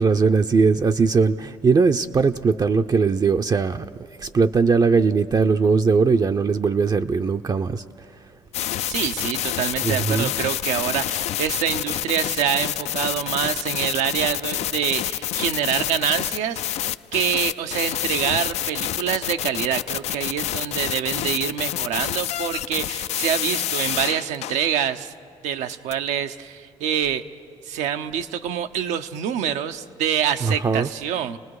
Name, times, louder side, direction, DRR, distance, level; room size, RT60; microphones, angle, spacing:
voice 1, 0.0-7.8 9.8-10.3 30.4-30.9, right 4 dB, 35° right, 6 dB, 0.5 m, -20 dB
sound 1, 8.5-24.9 25.7-25.9, left 11 dB, 70° left, 0.4 m, -27 dB
voice 2, 8.9-16.9 17.1-25.1 25.4-27.2 27.7-31.4, right 9 dB, 85° right, 8 dB, 0.7 m, -26 dB
29.5 x 19.0 x 4.8 m, 2.3 s
supercardioid pair, 70°, 12 cm